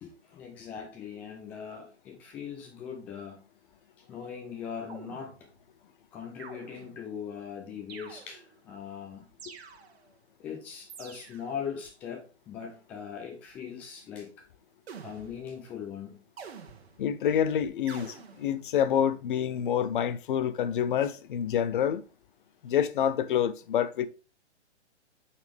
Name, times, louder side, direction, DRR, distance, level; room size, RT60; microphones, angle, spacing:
voice 1, 0.0-3.4 4.1-5.3 6.1-9.3 10.4-14.3 15.0-16.2, left 7 dB, 5° left, 0.3 m, -40 dB
sound 1, 4.9-5.7 6.4-7.1 7.9-8.7 9.4-10.2 10.9-11.6 14.9-15.6 16.4-17.2 17.9-18.6, right 6 dB, 60° right, 1.3 m, -47 dB
voice 2, 17.0-22.0 22.6-24.1, left 9 dB, 45° left, 0.6 m, -27 dB
7.9 x 4.2 x 3.4 m
figure-of-eight pair, 120°, 35 cm